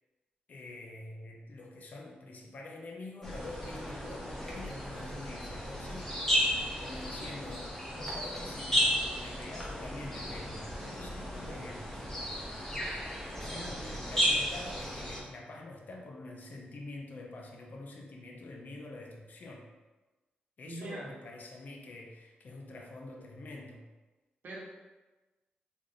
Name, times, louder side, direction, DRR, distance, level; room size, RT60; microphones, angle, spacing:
voice 1, 0.5-6.4 6.8-12.1 12.6-12.8 13.4-19.7 20.6-23.8, left 2 dB, 55° left, 0 dB, 0.6 m, -46 dB
sound 1, 3.2-15.2, equal, 10° left, 1.0 m, -34 dB
voice 2, 13.5-14.0 20.7-21.1 24.4-24.6, right 2 dB, 70° right, -4 dB, 1.0 m, -42 dB
3.5 x 2.5 x 3.7 m, 1.2 s
cardioid pair, 100°, 3 cm